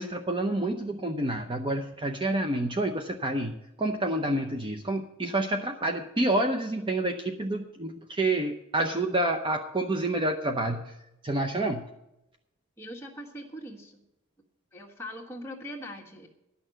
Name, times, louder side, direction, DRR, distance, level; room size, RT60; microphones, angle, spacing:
voice 1, 0.0-11.0 11.2-11.8, right 1 dB, 25° right, 4 dB, 0.6 m, -28 dB
voice 2, 12.8-14.0 14.7-16.3, equal, 10° left, -2 dB, 1.6 m, -41 dB
11.0 x 6.4 x 8.9 m, 0.86 s
head